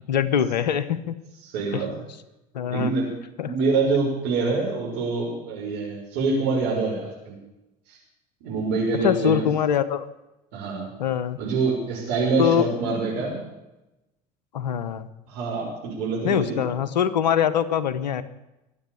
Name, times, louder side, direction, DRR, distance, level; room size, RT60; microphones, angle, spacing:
voice 1, 0.1-1.1 1.7-1.8 2.5-2.9 3.4-3.5 8.9-10.1 11.0-11.4 12.4-12.6 14.5-15.1 16.2-18.2, left 9 dB, 85° left, 14 dB, 1.0 m, -23 dB
voice 2, 1.5-1.9 2.7-3.1 3.4-7.3 7.9-8.0 8.4-9.5 10.5-10.9 11.4-13.4 15.3-16.6, right 4 dB, 65° right, -4 dB, 6.3 m, -25 dB
23.5 x 8.6 x 7.0 m, 0.96 s
hypercardioid pair, 70°, 21 cm